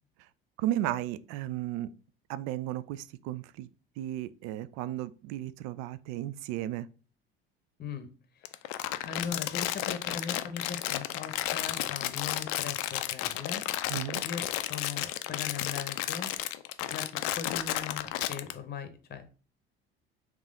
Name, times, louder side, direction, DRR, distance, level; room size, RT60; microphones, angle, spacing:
voice 1, 0.6-1.9 2.3-3.7 4.0-6.9 13.9-14.2, right 13 dB, 60° right, 0.4 m, -34 dB
voice 2, 8.3-8.7 9.0-13.6 14.2-16.3 16.9-19.3, left 6 dB, 30° left, 0.8 m, -39 dB
Crumpling crinkling, 8.4-18.5, left 14 dB, 60° left, 0.5 m, -33 dB
3.7 x 3.1 x 3.7 m
hypercardioid pair, 60°, 31 cm